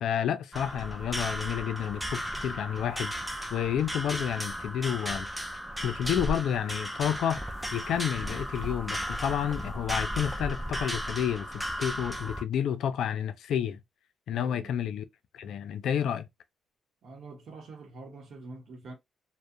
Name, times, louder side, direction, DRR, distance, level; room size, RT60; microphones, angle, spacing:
voice 1, 0.0-3.1 3.5-5.3 5.8-7.4 7.7-13.8 14.3-15.1 15.3-16.3, left 9 dB, 75° left, 0.4 m, -30 dB
sound 1, 0.5-12.4, equal, ahead, 0.5 m, -35 dB
voice 2, 14.3-14.8 17.0-18.9, right 3 dB, 65° right, 0.8 m, -45 dB
2.4 x 2.0 x 2.6 m
cardioid pair, 90°, 0 cm